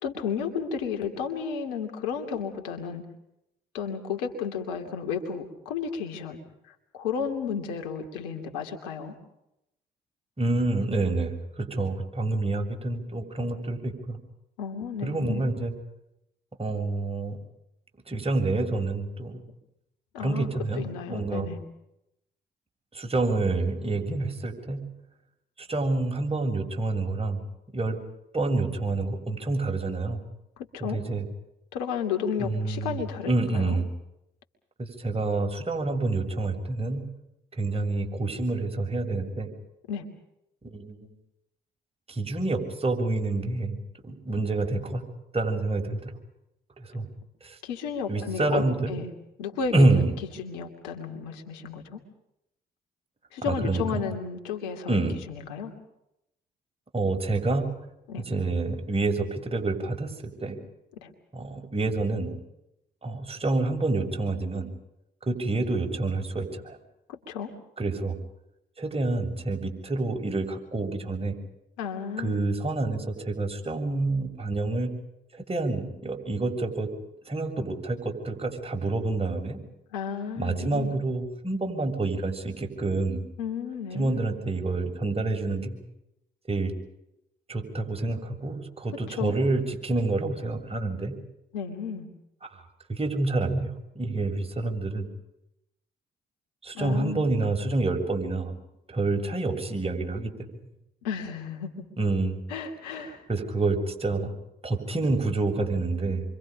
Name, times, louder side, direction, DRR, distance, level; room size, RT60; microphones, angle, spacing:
voice 1, 0.0-3.0 3.7-6.4 6.7-9.1 14.6-15.5 20.1-20.5 20.8-21.6 30.6-31.0 31.7-33.8 39.9-40.1 47.6-49.1 49.4-49.9 50.4-52.0 53.3-55.7 58.1-58.2 61.0-61.1 67.1-67.5 71.8-72.5 79.9-81.0 83.4-84.2 89.1-89.4 91.5-92.1 96.7-97.2 101.0-101.7 102.5-103.2, left 6 dB, 85° left, 4 dB, 2.8 m, -33 dB
voice 2, 10.4-14.2 15.0-15.7 16.6-17.4 18.1-19.4 20.2-21.5 22.9-24.9 25.6-27.4 27.7-28.0 28.3-30.2 30.8-31.2 32.4-33.0 33.3-33.8 34.8-37.0 37.5-39.5 40.6-41.1 42.1-43.8 44.0-45.0 45.3-46.1 46.8-47.1 47.4-47.6 48.1-48.9 49.7-50.1 53.4-54.0 54.9-55.2 56.9-57.9 58.2-60.6 61.3-62.4 63.0-64.7 65.3-66.8 67.8-68.1 68.8-71.4 72.2-74.9 75.3-76.9 77.3-79.6 80.4-83.2 83.9-85.8 86.5-86.7 87.5-91.2 92.5-92.6 92.9-95.1 96.6-98.5 98.9-100.5 102.0-102.4 103.3-104.3 104.6-106.2, right 2 dB, 30° right, 3 dB, 7.0 m, -28 dB
28.5 x 25.0 x 5.3 m, 0.84 s
hypercardioid pair, 50°, 21 cm